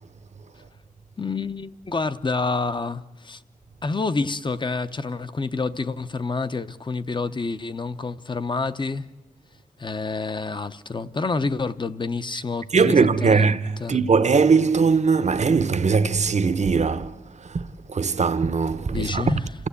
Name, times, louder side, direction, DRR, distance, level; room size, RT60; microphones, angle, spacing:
voice 1, 1.2-3.4 3.8-9.1 9.8-13.5 13.8-14.0 18.9-19.5, left 3 dB, 35° left, 0.7 m, -28 dB
voice 2, 12.7-13.6 13.9-17.6 17.9-19.2, right 5 dB, 50° right, 0.8 m, -20 dB
28.5 x 15.5 x 8.4 m
wide cardioid pair, 125°, 15 cm